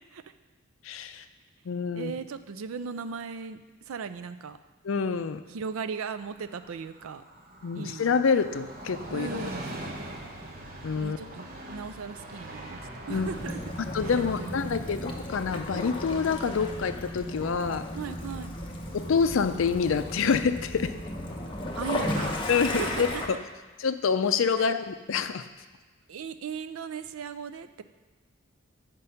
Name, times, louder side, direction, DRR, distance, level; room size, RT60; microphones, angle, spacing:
voice 1, 0.8-1.2 1.7-2.1 4.8-5.4 7.6-9.5 10.8-11.2 13.1-13.3 13.9-17.9 18.9-20.9 22.5-23.4 23.8-25.5, left 5 dB, 65° left, 11 dB, 0.4 m, -27 dB
voice 2, 1.9-4.6 5.5-7.2 7.8-8.0 9.1-9.7 11.0-12.8 13.1-13.6 14.0-14.7 17.9-18.5 21.8-23.2 24.6-24.8 26.1-27.8, right 6 dB, 85° right, 11 dB, 0.4 m, -37 dB
Train, 6.1-19.5 19.8-19.9, right 1 dB, 45° right, 0.9 m, -43 dB
Waves surf / Splash splatter / Trickle dribble, 13.1-23.3, left 1 dB, 25° left, 0.8 m, -35 dB
8.1 x 5.2 x 5.6 m, 1.3 s
head